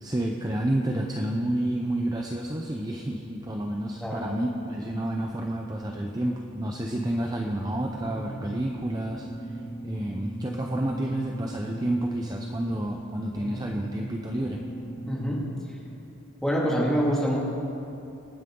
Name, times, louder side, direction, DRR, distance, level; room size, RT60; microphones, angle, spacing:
voice 1, 0.0-9.3 9.5-14.6, right 1 dB, 15° right, 1 dB, 0.6 m, -30 dB
sound 1, 6.8-15.3, right 1 dB, 25° left, 2.4 m, -39 dB
voice 2, 15.1-15.4 16.4-17.4, equal, ahead, -5 dB, 2.3 m, -25 dB
26.0 x 9.7 x 3.8 m, 2.8 s
head